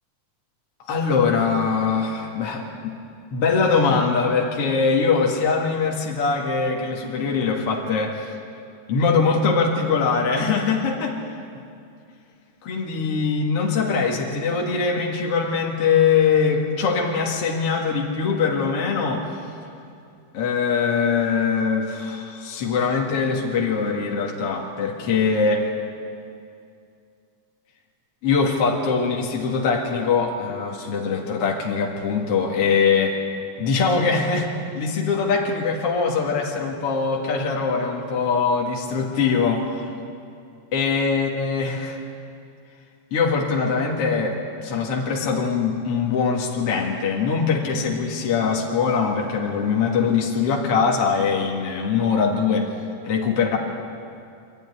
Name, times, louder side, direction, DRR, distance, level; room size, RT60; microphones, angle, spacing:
voice 1, 0.9-3.0 3.3-8.3 8.9-11.2 12.6-19.2 20.3-25.7 28.2-33.2 33.6-34.5 34.7-39.8 40.7-42.0 43.1-52.7 53.0-53.6, left 5 dB, 55° left, -1 dB, 2.8 m, -22 dB
25.0 x 12.0 x 9.6 m, 2.5 s
omnidirectional pair, 3.3 m